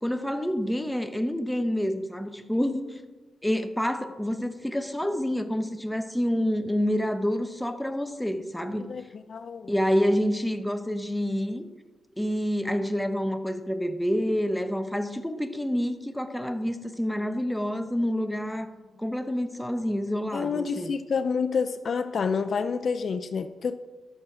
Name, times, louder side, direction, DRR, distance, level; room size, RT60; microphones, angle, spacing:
voice 1, 0.0-3.0 3.4-8.9 9.7-11.7 12.2-18.7 19.0-20.9, equal, 5° left, 0.9 m, -28 dB
voice 2, 8.8-9.7 20.3-23.8, left 5 dB, 60° left, 0.4 m, -28 dB
12.0 x 6.3 x 4.9 m
cardioid pair, 65°, 0 cm